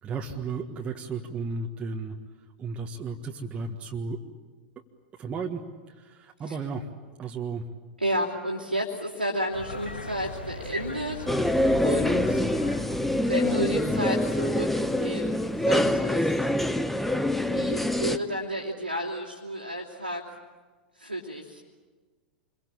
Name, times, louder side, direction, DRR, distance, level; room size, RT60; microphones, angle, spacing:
voice 1, 0.0-2.1 2.6-4.2 5.2-6.9 7.2-7.6, right 4 dB, 20° right, 1 dB, 1.7 m, -34 dB
voice 2, 8.0-11.2 11.8-12.5 13.2-16.4 17.5-20.2 21.0-21.6, equal, 90° right, -4 dB, 3.0 m, -32 dB
sound 1, 9.5-15.7, left 1 dB, 80° left, 3.0 m, -41 dB
sound 2, 11.3-18.2, left 1 dB, 5° left, 1.0 m, -25 dB
27.5 x 23.0 x 8.7 m, 1.4 s
figure-of-eight pair, 95°, 5 cm